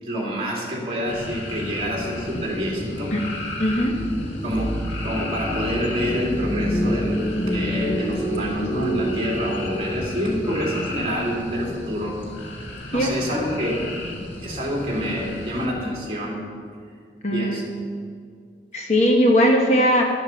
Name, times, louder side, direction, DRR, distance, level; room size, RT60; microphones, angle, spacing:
voice 1, 0.0-3.1 4.4-12.2 12.9-13.8 14.4-16.4 17.3-17.6, equal, 30° right, -3 dB, 2.8 m, -27 dB
sound 1, 1.0-15.7, left 1 dB, 90° left, 1.9 m, -34 dB
voice 2, 3.6-4.0 12.9-13.6 15.0-15.2 17.2-17.6 18.7-20.0, equal, 40° left, 1 dB, 1.3 m, -20 dB
sound 2, 3.6-12.0, equal, 20° left, 0.8 m, -28 dB
12.0 x 7.4 x 7.1 m, 2.2 s
head